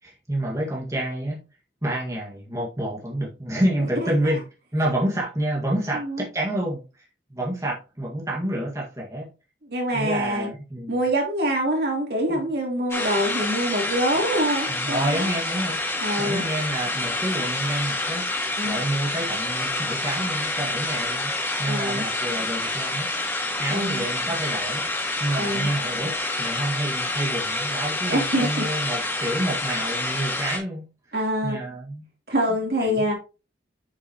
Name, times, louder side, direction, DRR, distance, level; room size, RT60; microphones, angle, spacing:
voice 1, 0.0-1.4 1.8-4.4 4.7-9.3 9.9-10.9 12.3-12.4 14.7-15.8 16.2-18.2 18.6-21.3 21.6-24.9 25.2-30.9 31.4-32.1 32.5-33.1, right 1 dB, 20° right, -4 dB, 1.8 m, -28 dB
voice 2, 5.9-6.2 9.6-10.5 10.9-15.3 16.0-16.4 18.6-18.8 21.6-22.0 23.7-24.1 25.4-25.7 28.1-28.6 31.1-31.6 32.3-33.1, equal, 60° right, -1 dB, 3.3 m, -25 dB
sound 1, 12.9-30.6, left 2 dB, 15° left, 2.8 m, -28 dB
8.0 x 7.1 x 3.0 m, 0.32 s
head